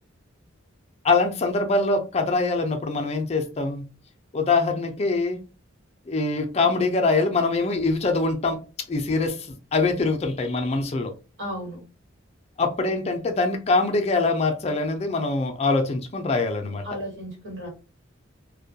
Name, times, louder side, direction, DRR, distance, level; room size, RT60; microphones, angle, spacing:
voice 1, 1.0-3.9 4.3-5.4 6.1-8.6 8.9-11.1 12.6-16.8, left 3 dB, 30° left, 0.4 m, -23 dB
voice 2, 11.4-11.8 16.8-17.7, equal, 80° right, 1.2 m, -34 dB
2.2 x 2.1 x 2.7 m
head